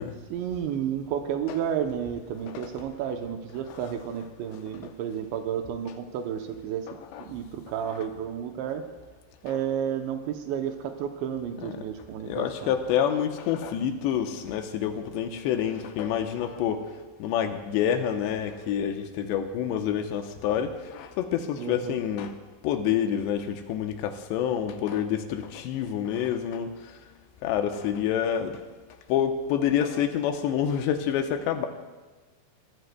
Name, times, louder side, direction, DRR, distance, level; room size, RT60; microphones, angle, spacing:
voice 1, 0.3-6.9 7.2-8.8 9.4-12.8 21.6-22.0, right 9 dB, 85° right, 5 dB, 3.1 m, -31 dB
voice 2, 12.2-22.3 22.6-27.0 27.4-28.6 29.1-31.7, left 9 dB, 80° left, 6 dB, 3.0 m, -27 dB
22.0 x 14.5 x 2.3 m, 1.3 s
omnidirectional pair, 5.1 m